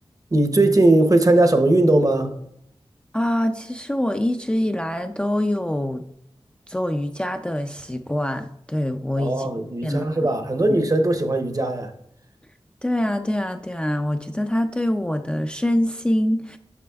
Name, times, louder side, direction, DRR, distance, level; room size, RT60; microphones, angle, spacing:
voice 1, 0.3-2.3 9.2-11.9, right 2 dB, 35° right, 0.7 m, -19 dB
voice 2, 3.1-6.0 6.7-9.5 9.8-10.1 10.7-10.8 12.8-16.6, left 1 dB, 10° left, 0.4 m, -24 dB
8.4 x 6.0 x 2.3 m
wide cardioid pair, 55°, 10 cm